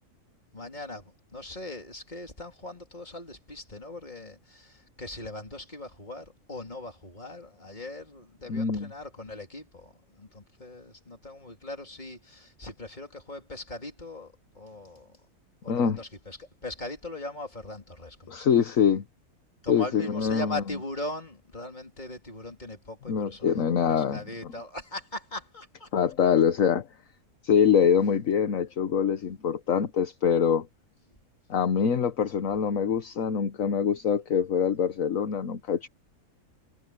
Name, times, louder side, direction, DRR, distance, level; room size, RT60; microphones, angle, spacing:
voice 1, 0.5-15.2 15.6-18.5 19.6-25.9, left 2 dB, 30° left, 3.8 m, -40 dB
voice 2, 8.5-8.9 15.7-16.0 18.3-19.0 19.7-20.6 23.1-24.2 25.9-26.9 27.4-30.7 31.5-35.9, left 7 dB, 60° left, 1.4 m, -24 dB
omnidirectional pair, 1.6 m